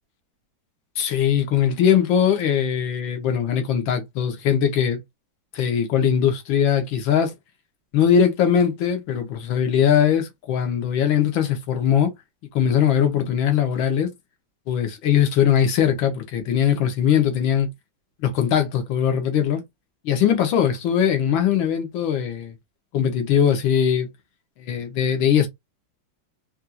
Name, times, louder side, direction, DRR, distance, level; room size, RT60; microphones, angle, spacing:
voice 1, 1.0-5.0 5.5-7.3 7.9-12.1 12.6-14.1 14.7-17.7 18.2-19.6 20.1-22.5 22.9-24.1 24.6-25.5, left 8 dB, 85° left, 1.7 m, -20 dB
4.3 x 2.4 x 2.3 m
omnidirectional pair, 2.1 m